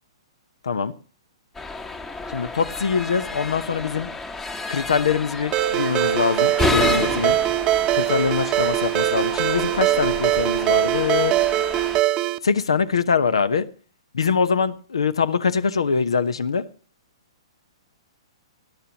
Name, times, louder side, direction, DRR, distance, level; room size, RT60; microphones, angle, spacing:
sound 1, 1.5-12.0, left 3 dB, 15° left, 1.0 m, -30 dB
voice 1, 2.3-4.1 4.7-7.4 7.9-11.4 12.4-13.7 14.1-16.6, left 6 dB, 80° left, 0.9 m, -23 dB
Ringtone, 5.5-12.4, right 14 dB, 30° right, 0.8 m, -22 dB
18.5 x 11.5 x 2.9 m
hypercardioid pair, 125°, 3 cm